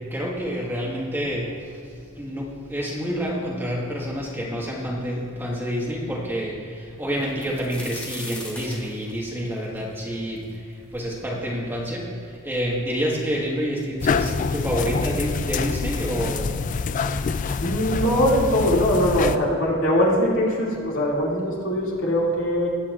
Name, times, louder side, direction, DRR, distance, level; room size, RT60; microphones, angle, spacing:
voice 1, 0.1-1.5 2.2-16.5, equal, 10° right, -3 dB, 1.5 m, -28 dB
sound 1, 7.2-11.0 11.5-11.6 12.3-12.4 12.7-13.4 14.3-14.4 14.7-14.9, left 1 dB, 5° left, 1.3 m, -39 dB
sound 2, 14.0-19.4, left 5 dB, 40° left, 0.3 m, -26 dB
voice 2, 17.6-22.7, equal, 75° left, -4 dB, 2.5 m, -21 dB
20.0 x 8.5 x 2.5 m, 2.3 s
head